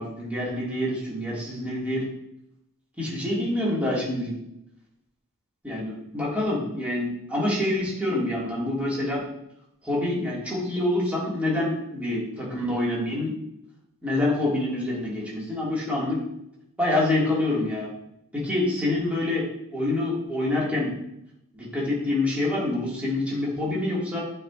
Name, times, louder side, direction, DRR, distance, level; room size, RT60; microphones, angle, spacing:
voice 1, 0.0-2.0 3.0-4.3 5.6-9.2 9.8-13.3 14.0-16.2 16.8-17.9 18.3-19.4 19.7-20.9 21.5-24.2, left 1 dB, 5° right, -7 dB, 1.9 m, -26 dB
8.7 x 4.8 x 2.4 m, 0.81 s
head